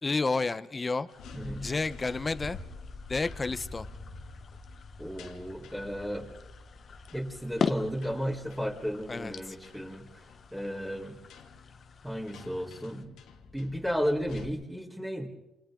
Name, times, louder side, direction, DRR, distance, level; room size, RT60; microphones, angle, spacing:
voice 1, 0.0-1.1 1.6-2.6 3.1-3.9 9.1-9.6, left 3 dB, 25° left, 13 dB, 1.1 m, -30 dB
sound 1, 1.1-14.4, left 3 dB, 85° left, 2.6 m, -48 dB
sound 2, 1.1-13.0, left 6 dB, 50° left, 1.4 m, -42 dB
voice 2, 1.3-1.7 5.0-6.3 7.1-11.2 12.0-13.1 13.5-15.3, equal, 5° right, -4 dB, 4.3 m, -34 dB
29.0 x 28.0 x 4.0 m, 1.1 s
cardioid pair, 90°, 0 cm